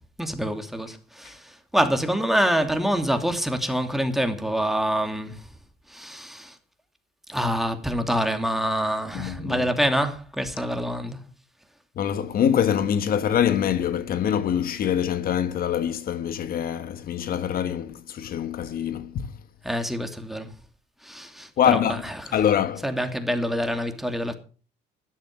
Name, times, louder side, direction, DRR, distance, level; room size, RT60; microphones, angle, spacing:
voice 1, 0.2-5.4 5.9-6.5 7.3-11.2 19.6-20.5 21.0-22.4 22.8-24.3, equal, ahead, 2.7 m, -26 dB
voice 2, 9.1-9.6 12.0-19.3 21.6-22.0 22.3-22.8, left 9 dB, 60° left, 1.3 m, -24 dB
13.0 x 12.0 x 6.1 m
cardioid pair, 100°, 17 cm